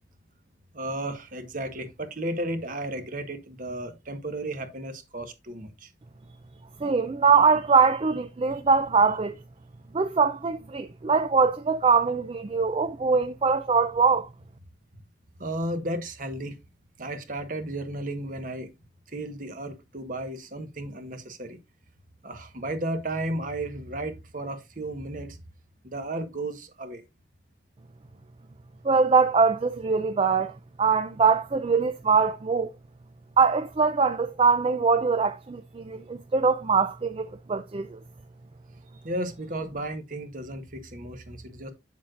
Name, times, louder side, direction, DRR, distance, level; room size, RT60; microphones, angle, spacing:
voice 1, 0.7-5.9 8.5-8.6 14.9-15.0 15.4-16.6 17.0-18.7 19.1-21.6 22.2-25.4 25.8-27.0 39.0-41.7, right 1 dB, 45° right, 1.2 m, -34 dB
voice 2, 6.8-9.3 9.9-14.3 28.8-30.5 30.8-32.7 33.4-38.0, right 5 dB, 30° right, 0.4 m, -22 dB
7.7 x 7.2 x 2.5 m
head